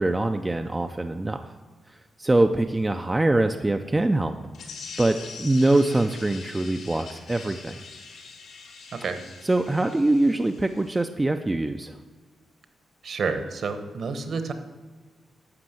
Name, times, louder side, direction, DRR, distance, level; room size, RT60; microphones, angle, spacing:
voice 1, 0.0-1.5 2.2-4.4 5.0-7.8 9.4-12.0, right 2 dB, 15° right, 6 dB, 0.4 m, -23 dB
sound 1, 4.5-11.0, left 4 dB, 85° left, 2.6 m, -43 dB
voice 2, 13.0-14.5, right 4 dB, 50° right, 9 dB, 1.0 m, -29 dB
11.5 x 6.1 x 7.7 m, 1.4 s
wide cardioid pair, 160°, 0 cm